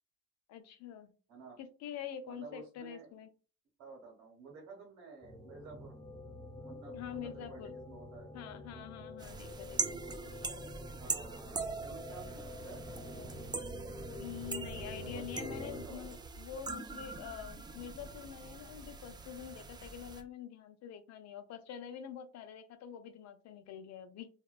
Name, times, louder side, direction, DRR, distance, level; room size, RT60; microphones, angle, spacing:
voice 1, 0.5-1.1 1.6-3.3 6.9-7.7 8.3-10.0 14.2-24.3, left 9 dB, 55° left, 9 dB, 0.5 m, -46 dB
voice 2, 1.3-1.6 2.3-3.1 3.8-5.9 6.6-8.3 11.0-13.3 14.8-16.2, right 4 dB, 80° right, 0 dB, 1.4 m, -52 dB
sound 1, 5.2-15.9, left 1 dB, 15° left, 1.1 m, -47 dB
sound 2, 9.2-20.2, right 4 dB, 15° right, 0.3 m, -42 dB
2.7 x 2.1 x 2.3 m, 0.36 s
supercardioid pair, 75°, 32 cm